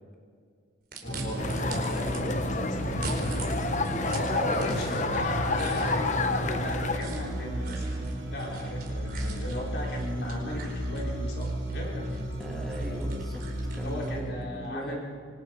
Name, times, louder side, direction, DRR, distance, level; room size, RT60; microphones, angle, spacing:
sound 1, 0.9-2.2 2.8-5.2 5.5-14.2, right 4 dB, 50° right, 4.7 m, -44 dB
voice 1, 1.0-3.1 4.0-7.8 8.3-12.3 13.7-15.0, left 1 dB, 55° left, -2 dB, 4.6 m, -36 dB
sound 2, 1.0-14.2, right 1 dB, 80° right, 4.8 m, -33 dB
sound 3, 1.4-7.0, left 3 dB, 40° left, 1.0 m, -30 dB
voice 2, 4.3-4.9 12.4-13.4 13.7-15.0, equal, ahead, -2 dB, 2.7 m, -38 dB
28.0 x 24.0 x 5.4 m, 2.1 s
head